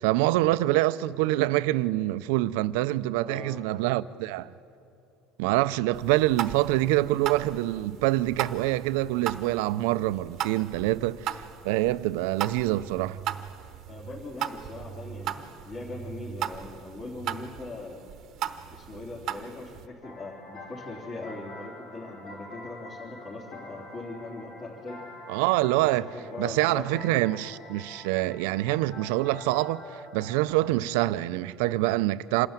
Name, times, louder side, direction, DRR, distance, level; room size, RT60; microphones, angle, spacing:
voice 1, 0.0-4.5 5.4-13.2 25.3-26.1 26.4-32.5, right 17 dB, 85° right, 0.5 m, -25 dB
voice 2, 3.2-3.6 13.9-18.0 18.7-25.1 25.8-27.3, left 2 dB, 35° left, 3.6 m, -40 dB
sound 1, 5.9-19.9, right 11 dB, 50° right, 0.9 m, -37 dB
sound 2, 20.0-30.8, left 2 dB, 65° left, 6.2 m, -46 dB
26.5 x 13.0 x 9.1 m
cardioid pair, 140°, 0 cm